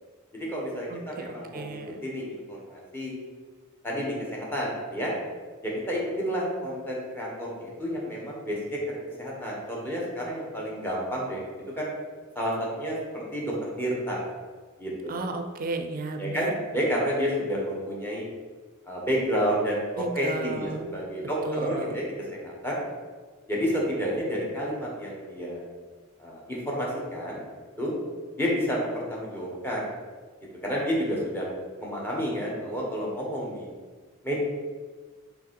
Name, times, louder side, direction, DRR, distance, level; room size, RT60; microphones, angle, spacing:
voice 1, 0.3-3.1 3.8-5.1 5.6-11.4 11.7-11.9 12.3-14.2 14.8-15.2 16.2-18.3 18.9-22.8 23.5-25.6 26.2-27.4 27.8-27.9 28.4-29.9 30.6-31.5 31.8-33.7 34.2-34.4, equal, 10° left, -4 dB, 1.4 m, -30 dB
voice 2, 0.9-2.0 15.1-16.5 20.0-20.9 21.4-22.0, right 3 dB, 45° right, 6 dB, 0.5 m, -34 dB
5.9 x 3.6 x 4.7 m, 1.4 s
head